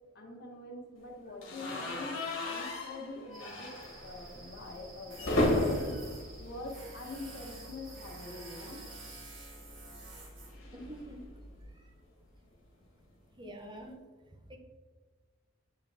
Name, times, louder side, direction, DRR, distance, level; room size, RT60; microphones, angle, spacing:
voice 1, 0.1-3.7 4.0-5.9 6.4-8.8, left 2 dB, 55° left, 0 dB, 1.4 m, -45 dB
sound 1, 1.4-7.4 7.7-7.9 8.2-8.3 9.6-11.9, left 1 dB, 85° left, 1.4 m, -35 dB
sound 2, 3.3-9.2, right 2 dB, 45° right, 1.1 m, -53 dB
Tools, 5.1-11.6, right 1 dB, 70° right, 1.4 m, -49 dB
voice 2, 10.7-11.2 11.7-11.9 13.4-14.0 14.5-14.6, right 1 dB, 25° right, 2 dB, 0.8 m, -46 dB
8.4 x 4.0 x 3.4 m, 1.3 s
head